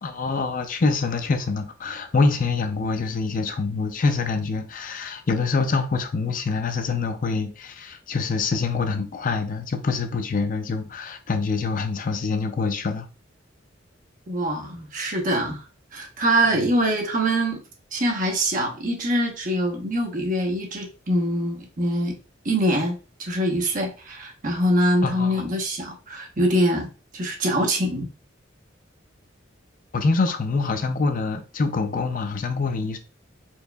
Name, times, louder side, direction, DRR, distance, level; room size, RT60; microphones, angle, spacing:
voice 1, 0.0-13.1 16.5-16.7 25.0-25.4 29.9-33.0, left 4 dB, 45° left, 0.5 m, -25 dB
voice 2, 14.3-15.6 15.9-17.6 17.9-22.1 22.4-28.1, right 1 dB, 45° right, 1.0 m, -24 dB
4.5 x 2.9 x 2.3 m
head